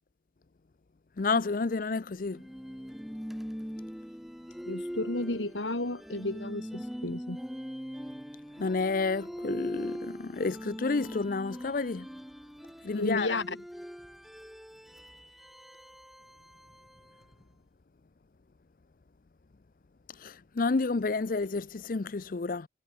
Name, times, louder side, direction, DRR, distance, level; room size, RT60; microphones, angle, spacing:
voice 1, 1.2-2.4 8.6-12.1 12.8-13.3 20.2-22.7, left 4 dB, 50° left, 0.5 m, -30 dB
sound 1, 2.3-17.4, equal, ahead, 5.9 m, -42 dB
voice 2, 4.7-7.4 12.9-13.6, left 2 dB, 90° left, 3.5 m, -32 dB
head